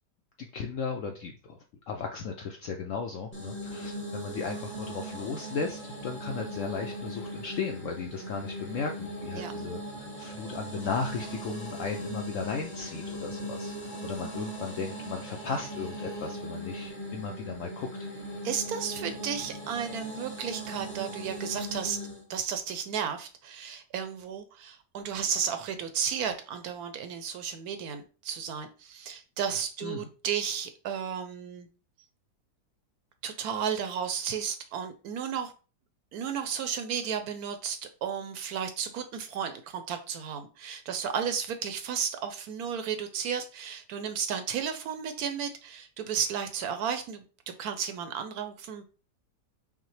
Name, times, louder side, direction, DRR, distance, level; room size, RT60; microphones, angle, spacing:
voice 1, 0.4-1.6 1.9-13.7 14.0-18.1 29.8-30.1, left 5 dB, 75° left, 3 dB, 0.7 m, -36 dB
sound 1, 3.3-22.2, right 1 dB, 10° left, 0.5 m, -39 dB
sound 2, 10.8-16.3, left 3 dB, 50° left, 1.0 m, -51 dB
voice 2, 18.4-22.0 22.3-31.7 33.2-35.5 36.1-47.2 47.6-48.8, right 7 dB, 70° right, 8 dB, 1.0 m, -33 dB
5.5 x 2.1 x 3.1 m, 0.35 s
omnidirectional pair, 1.8 m